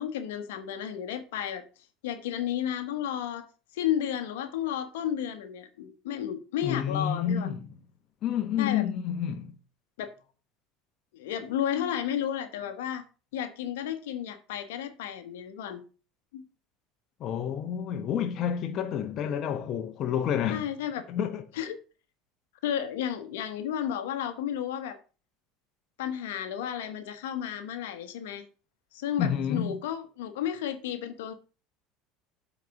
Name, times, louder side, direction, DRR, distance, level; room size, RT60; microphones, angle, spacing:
voice 1, 0.0-1.6 2.0-3.4 3.7-7.5 8.6-8.8 10.0-10.1 11.1-13.0 13.3-15.8 16.3-16.4 20.5-21.0 21.5-21.7 22.6-25.0 26.0-28.4 28.9-31.3, left 10 dB, 80° left, 1.1 m, -32 dB
voice 2, 6.6-7.7 8.2-9.5 17.2-20.7 21.1-21.4 29.2-29.7, left 9 dB, 50° left, 1.0 m, -29 dB
7.7 x 4.3 x 5.7 m
hypercardioid pair, 85°, 0 cm